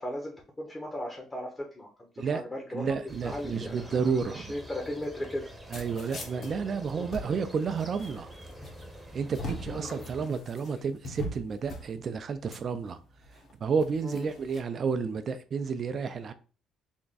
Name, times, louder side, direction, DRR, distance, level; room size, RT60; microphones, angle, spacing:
voice 1, 0.0-5.5 6.9-7.0 9.7-10.0 14.0-14.3, left 1 dB, 20° left, 0.9 m, -37 dB
voice 2, 2.7-4.5 5.7-8.3 9.1-13.0 13.6-16.3, right 5 dB, 45° right, 0.5 m, -31 dB
sound 1, 3.1-10.3, equal, 5° right, 0.8 m, -46 dB
sound 2, 4.8-14.6, left 1 dB, 50° left, 1.2 m, -43 dB
3.5 x 2.2 x 4.0 m
cardioid pair, 90°, 0 cm